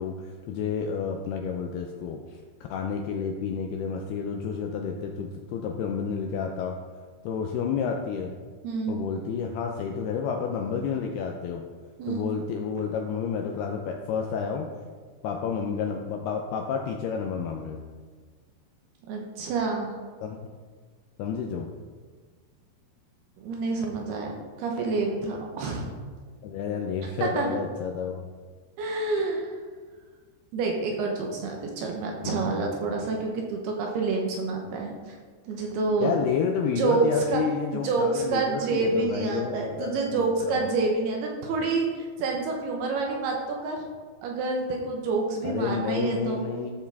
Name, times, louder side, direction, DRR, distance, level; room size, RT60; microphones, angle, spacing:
voice 1, 0.0-2.4 2.7-6.8 7.2-8.3 8.9-11.6 12.1-14.7 15.2-17.8 20.2-20.4 21.2-21.7 26.4-28.3 32.2-33.0 36.0-40.6 45.4-46.7, left 6 dB, 80° left, 2 dB, 2.3 m, -30 dB
voice 2, 8.6-9.0 12.0-12.3 19.1-19.9 23.4-24.3 24.6-25.9 27.2-27.5 28.8-29.5 30.5-35.2 35.5-36.2 36.7-37.4 37.7-43.4 43.6-43.8 44.2-46.4, right 3 dB, 70° right, 1 dB, 2.7 m, -28 dB
13.0 x 7.1 x 3.5 m, 1.5 s
omnidirectional pair, 5.2 m